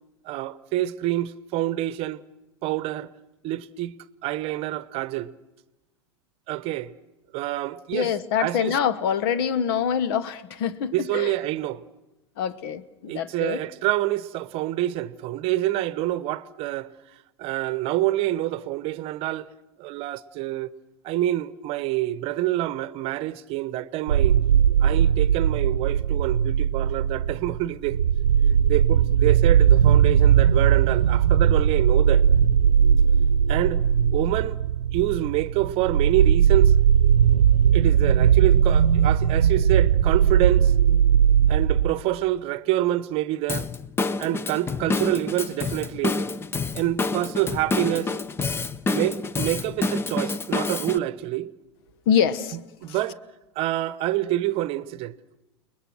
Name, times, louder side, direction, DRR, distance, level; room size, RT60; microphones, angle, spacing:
voice 1, 0.2-2.2 2.6-3.1 3.4-3.9 4.2-5.3 6.5-6.9 7.3-8.1 8.4-8.8 10.9-11.8 13.1-16.9 17.4-19.5 19.8-20.7 21.0-24.4 24.8-28.0 28.7-32.3 33.5-33.8 34.1-34.6 34.9-36.7 37.7-40.7 41.5-43.7 44.2-46.2 46.7-48.1 48.9-51.5 52.8-53.2 53.6-55.1, right 15 dB, 45° right, 0.9 m, -27 dB
voice 2, 7.9-11.3 12.4-13.6 52.1-53.0, left 8 dB, 55° left, 1.2 m, -25 dB
sound 1, 24.1-41.9, right 8 dB, 75° right, 0.8 m, -19 dB
Drum kit / Drum, 43.5-51.0, left 3 dB, 15° left, 0.8 m, -28 dB
29.5 x 21.5 x 6.3 m
figure-of-eight pair, 90°, 14 cm